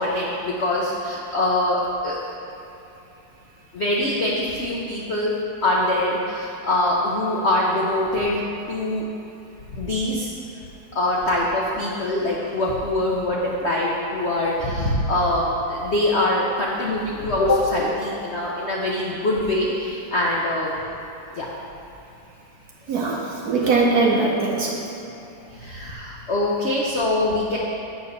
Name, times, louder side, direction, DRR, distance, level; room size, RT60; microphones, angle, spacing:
voice 1, 0.0-2.2 3.7-5.3 5.6-8.4 8.7-9.0 9.7-10.3 10.9-20.7 21.3-21.5 25.5-27.6, left 1 dB, 90° left, -4 dB, 0.6 m, -23 dB
voice 2, 22.9-24.7, right 3 dB, 60° right, -2 dB, 1.0 m, -21 dB
8.1 x 4.5 x 6.6 m, 2.9 s
omnidirectional pair, 2.4 m